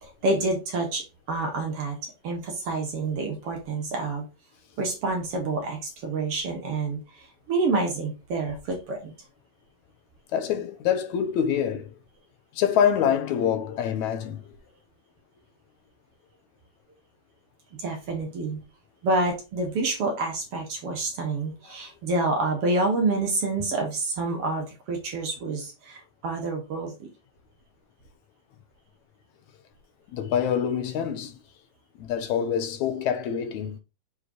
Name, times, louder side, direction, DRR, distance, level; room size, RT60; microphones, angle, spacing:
voice 1, 0.0-4.3 4.8-9.1 17.7-18.6 19.0-27.1, right 3 dB, 55° right, 2.1 m, -28 dB
voice 2, 10.3-11.9 12.6-14.4 30.1-31.4 32.0-33.8, left 8 dB, 75° left, 2.1 m, -25 dB
6.4 x 4.9 x 3.0 m
omnidirectional pair, 3.5 m